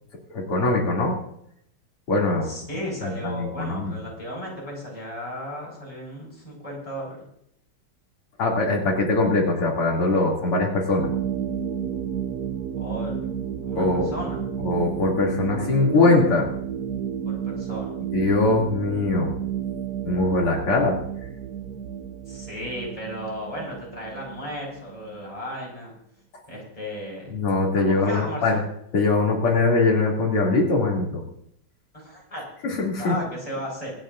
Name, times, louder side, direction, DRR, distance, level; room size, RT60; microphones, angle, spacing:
voice 1, 0.3-1.2 2.1-2.5 3.0-3.9 8.4-11.1 13.8-14.1 14.6-16.5 18.1-19.3 20.1-21.0 27.3-28.6 28.9-31.2 32.6-33.1, left 3 dB, 85° left, -3 dB, 3.9 m, -22 dB
voice 2, 2.4-7.3 12.8-13.3 13.6-14.4 17.3-18.0 22.3-25.9 26.5-27.3 27.8-28.6 31.9-32.5 33.0-33.9, equal, 15° left, -3 dB, 5.8 m, -35 dB
sound 1, 11.0-25.3, right 8 dB, 75° right, 0.8 m, -31 dB
25.5 x 10.5 x 2.7 m, 0.71 s
omnidirectional pair, 2.4 m